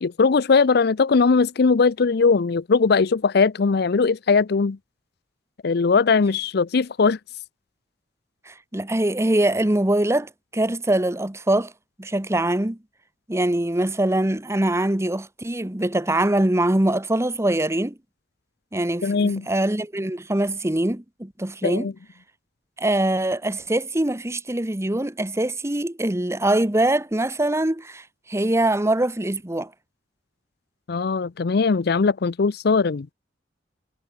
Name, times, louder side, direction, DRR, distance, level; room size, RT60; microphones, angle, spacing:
voice 1, 0.0-4.8 5.6-7.2 19.0-19.5 21.6-21.9 30.9-33.1, left 4 dB, 60° left, 0.5 m, -20 dB
voice 2, 8.5-11.7 12.0-12.8 13.3-18.0 18.7-21.9 22.8-29.7, right 1 dB, 15° right, 1.1 m, -23 dB
head